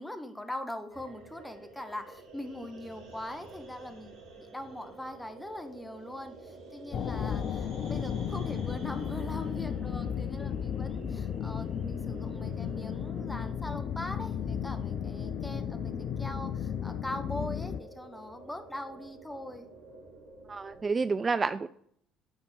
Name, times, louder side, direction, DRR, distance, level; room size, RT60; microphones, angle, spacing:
voice 1, 0.0-15.9 16.2-19.7, left 1 dB, 10° left, 7 dB, 1.6 m, -41 dB
sound 1, 0.9-20.8, right 3 dB, 65° right, 2.2 m, -49 dB
sound 2, 6.9-17.8, left 8 dB, 50° left, 0.5 m, -34 dB
voice 2, 20.5-21.7, right 4 dB, 30° right, 13 dB, 0.4 m, -29 dB
10.0 x 4.4 x 7.0 m, 0.66 s
hypercardioid pair, 55°, 0 cm